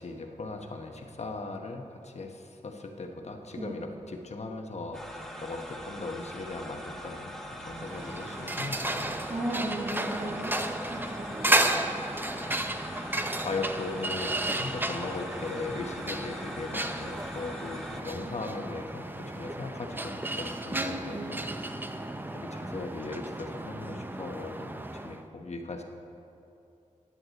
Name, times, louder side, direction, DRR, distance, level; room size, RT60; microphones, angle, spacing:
voice 1, 0.0-9.1 12.3-13.0 13.3-21.5 22.3-25.8, left 3 dB, 55° left, 3 dB, 1.0 m, -38 dB
sound 1, 4.9-18.0, equal, 5° left, 1.0 m, -42 dB
sound 2, 7.8-25.2, right 1 dB, 15° right, 0.5 m, -33 dB
voice 2, 9.3-10.6 10.8-11.6 20.7-21.4, right 1 dB, 40° right, -5 dB, 1.8 m, -35 dB
14.5 x 9.7 x 4.1 m, 2.7 s
wide cardioid pair, 90°, 14 cm